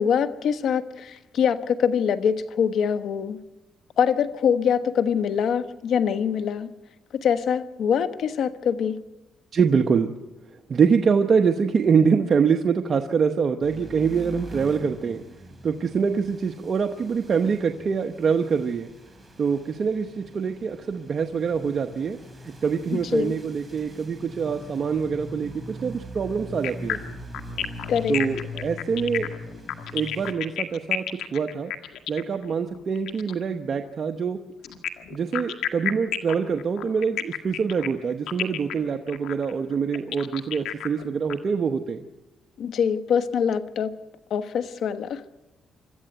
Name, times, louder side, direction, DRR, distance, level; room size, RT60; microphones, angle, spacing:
voice 1, 0.0-3.4 4.0-6.7 7.1-9.0 22.9-23.3 27.9-28.2 42.6-43.9 44.3-45.2, left 7 dB, 70° left, 10 dB, 1.1 m, -24 dB
voice 2, 9.5-10.1 10.7-15.2 15.6-18.9 19.4-22.2 22.4-27.0 28.1-29.3 29.9-31.7 32.1-34.4 35.1-42.0, right 6 dB, 45° right, 5 dB, 1.0 m, -24 dB
sound 1, 13.6-30.3, left 1 dB, 10° right, 3.9 m, -41 dB
sound 2, 26.6-33.4 34.6-41.3, left 11 dB, 85° left, 1.6 m, -31 dB
26.0 x 13.5 x 8.1 m, 1.1 s
cardioid pair, 90°, 0 cm